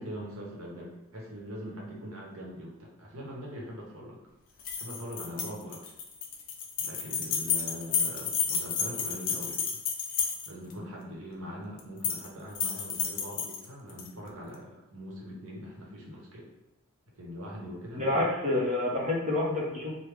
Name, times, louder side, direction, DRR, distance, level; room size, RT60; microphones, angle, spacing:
voice 1, 0.0-4.2 4.8-5.9 6.8-9.8 10.4-16.5 17.1-18.2, equal, 85° right, -3 dB, 1.0 m, -42 dB
sound 1, 4.6-10.7 11.8-12.3 12.5-14.1, left 6 dB, 40° left, 0.4 m, -31 dB
voice 2, 17.9-20.0, left 2 dB, 35° right, -4 dB, 0.8 m, -28 dB
3.3 x 2.2 x 3.3 m, 0.99 s
head